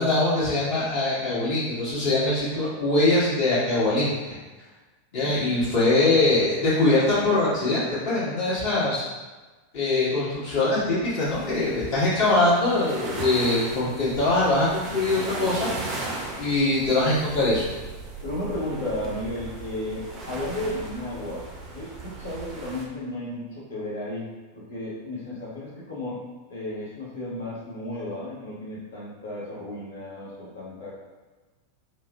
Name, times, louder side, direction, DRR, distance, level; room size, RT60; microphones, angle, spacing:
voice 1, 0.0-4.2 5.1-9.0 9.7-15.7 16.4-17.7, left 2 dB, 50° left, -10 dB, 1.4 m, -22 dB
sound 1, 11.3-22.8, right 2 dB, 30° right, 0.5 m, -37 dB
voice 2, 18.2-24.3 24.5-26.2 26.5-30.9, left 1 dB, 65° left, -8 dB, 1.0 m, -33 dB
3.0 x 2.0 x 2.3 m, 1.2 s
figure-of-eight pair, 90°, 0 cm